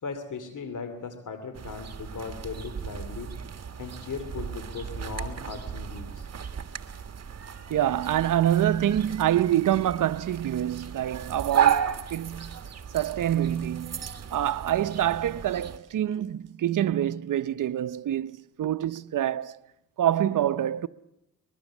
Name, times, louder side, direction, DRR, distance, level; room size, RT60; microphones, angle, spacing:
voice 1, 0.0-3.3 3.8-6.3, left 5 dB, 70° left, 2.7 m, -38 dB
sound 1, 1.5-15.8, right 8 dB, 50° right, 1.7 m, -33 dB
voice 2, 7.7-12.6 12.9-19.6 20.0-20.9, right 11 dB, 70° right, 0.8 m, -26 dB
23.0 x 21.5 x 7.3 m
cardioid pair, 70°, 32 cm